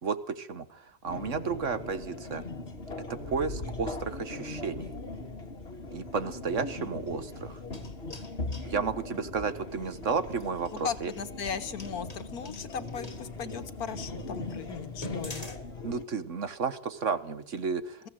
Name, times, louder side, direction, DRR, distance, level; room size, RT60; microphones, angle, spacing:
voice 1, 0.0-2.4 3.1-4.9 5.9-7.6 8.7-11.1 15.8-18.1, right 5 dB, 55° right, 11 dB, 1.7 m, -32 dB
sound 1, 1.0-16.0, left 2 dB, 45° left, 2.1 m, -40 dB
sound 2, 7.5-8.7 10.3-13.2 13.8-13.9 14.3-14.4 14.9-15.6, left 1 dB, 25° left, 2.4 m, -46 dB
voice 2, 10.8-15.5, left 7 dB, 85° left, 11 dB, 1.8 m, -37 dB
22.0 x 15.5 x 9.2 m, 0.70 s
omnidirectional pair, 1.5 m